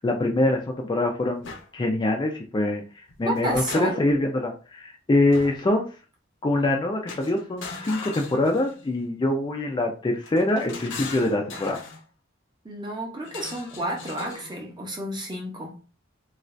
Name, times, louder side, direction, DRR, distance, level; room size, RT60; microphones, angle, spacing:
voice 1, 0.0-2.8 3.2-5.9 6.4-11.8, left 2 dB, 25° left, 0.4 m, -24 dB
sound 1, 1.4-1.7 3.1-4.2 5.3-5.7 7.1-8.9 10.2-12.0 13.2-14.6, left 4 dB, 65° left, 0.6 m, -39 dB
voice 2, 3.2-4.1 12.6-15.8, right 1 dB, 20° right, 0.8 m, -31 dB
2.5 x 2.3 x 3.1 m
head